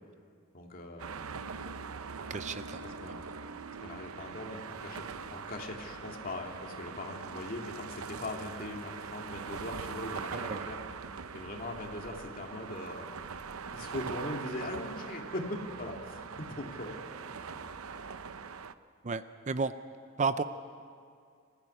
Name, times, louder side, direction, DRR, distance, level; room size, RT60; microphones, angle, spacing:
voice 1, 0.5-1.2 2.8-3.3 3.8-10.8 11.3-13.1 13.7-17.0, left 1 dB, 40° left, 1 dB, 2.6 m, -40 dB
sound 1, 1.0-18.7, right 5 dB, 85° right, 0.7 m, -42 dB
voice 2, 2.3-2.8 10.3-10.7 19.0-19.7 20.2-20.4, right 4 dB, 35° right, 12 dB, 0.5 m, -32 dB
26.0 x 15.0 x 9.8 m, 2.3 s
head